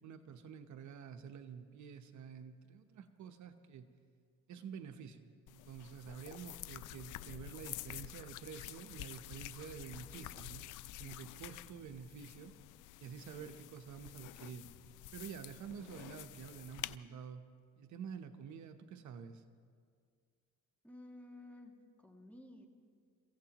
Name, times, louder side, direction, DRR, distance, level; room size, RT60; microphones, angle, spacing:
voice 1, 0.0-3.9 4.5-10.6 11.0-12.5 13.0-14.7 15.1-17.4 17.8-19.4, right 7 dB, 70° right, 7 dB, 1.0 m, -49 dB
sound 1, 5.5-17.0, left 16 dB, 85° left, 0.5 m, -49 dB
voice 2, 20.8-22.7, left 1 dB, 5° left, 1 dB, 2.2 m, -54 dB
29.5 x 16.0 x 3.0 m, 2.1 s
cardioid pair, 90°, 30 cm